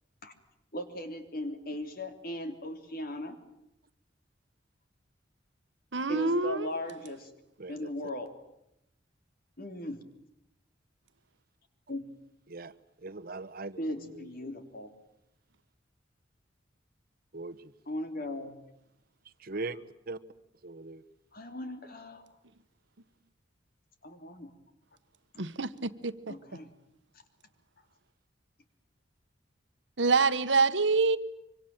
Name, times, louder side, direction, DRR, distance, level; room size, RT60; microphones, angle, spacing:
voice 1, 0.7-3.4 6.1-7.3 7.7-8.3 9.6-10.0 11.9-12.0 13.8-14.9 17.9-18.6 21.3-22.3 24.0-24.5 26.3-26.7, left 1 dB, 55° left, 3.5 m, -38 dB
voice 2, 5.9-6.7 25.4-26.3 30.0-31.2, right 4 dB, 75° right, 1.3 m, -26 dB
voice 3, 7.6-7.9 12.5-12.7 13.0-14.5 17.3-17.7 19.2-19.8 20.1-20.2 20.6-21.0, right 3 dB, 55° right, 1.1 m, -40 dB
25.5 x 25.0 x 9.0 m
head